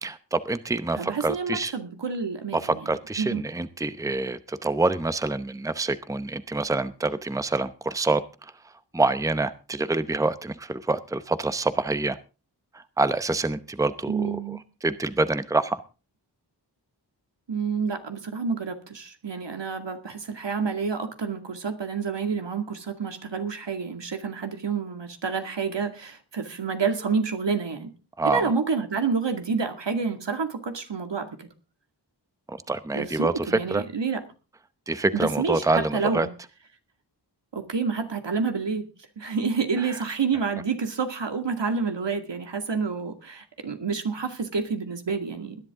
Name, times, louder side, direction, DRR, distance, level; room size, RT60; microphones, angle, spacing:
voice 1, 0.0-1.7 2.5-8.2 8.9-12.2 12.7-15.8 28.2-28.5 32.5-33.8 34.9-36.3 39.8-39.9, right 2 dB, 10° right, 13 dB, 0.8 m, -26 dB
voice 2, 1.0-2.9 3.2-3.4 14.1-14.6 17.5-27.9 28.2-31.5 32.9-34.2 35.1-36.3 37.5-38.9 39.2-45.6, right 5 dB, 80° right, 6 dB, 2.3 m, -28 dB
20.0 x 11.0 x 3.7 m, 0.33 s
wide cardioid pair, 75°, 42 cm